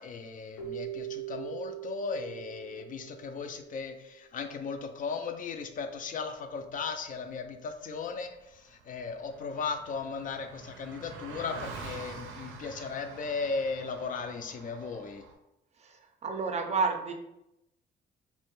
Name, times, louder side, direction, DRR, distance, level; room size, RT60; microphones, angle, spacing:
voice 1, 0.0-15.2, left 5 dB, 45° left, 6 dB, 0.4 m, -36 dB
Keyboard (musical), 0.6-3.8, right 12 dB, 90° left, 0.6 m, -41 dB
Car passing by, 8.2-8.3 8.5-15.3, right 5 dB, 90° right, 0.5 m, -46 dB
voice 2, 16.2-17.1, right 4 dB, 35° right, 4 dB, 0.4 m, -29 dB
2.5 x 2.1 x 3.0 m, 0.87 s
cardioid pair, 90°, 20 cm